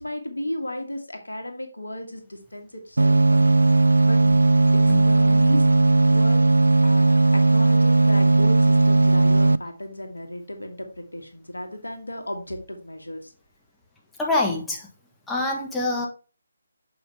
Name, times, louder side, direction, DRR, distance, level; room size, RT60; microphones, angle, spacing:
voice 1, 0.0-3.6 4.0-4.2 5.0-5.7 6.1-6.4 6.8-13.3, left 1 dB, 80° left, 4 dB, 1.7 m, -34 dB
sound 1, 3.0-9.6, right 2 dB, 75° right, 0.3 m, -17 dB
voice 2, 14.2-14.9 15.3-16.1, left 2 dB, 5° left, -2 dB, 1.2 m, -25 dB
6.8 x 5.5 x 3.3 m, 0.35 s
figure-of-eight pair, 150°, 0 cm